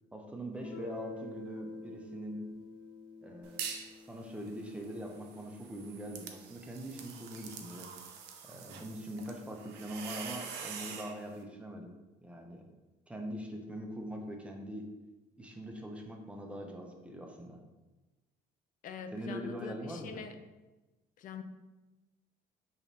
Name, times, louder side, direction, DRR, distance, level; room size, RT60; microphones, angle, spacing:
voice 1, 0.1-2.4 3.2-3.7 4.1-7.9 8.4-11.9 12.2-12.6 13.1-14.9 15.4-17.6 19.1-20.2, equal, 5° right, 1 dB, 0.6 m, -42 dB
Guitar, 0.6-6.1, left 3 dB, 90° left, 1.1 m, -48 dB
sound 1, 3.4-3.9 4.3-11.2, right 7 dB, 80° right, 0.5 m, -45 dB
voice 2, 18.8-20.4 21.2-21.4, left 6 dB, 55° left, 8 dB, 0.4 m, -44 dB
5.0 x 3.0 x 2.7 m, 1.1 s
cardioid pair, 110°, 17 cm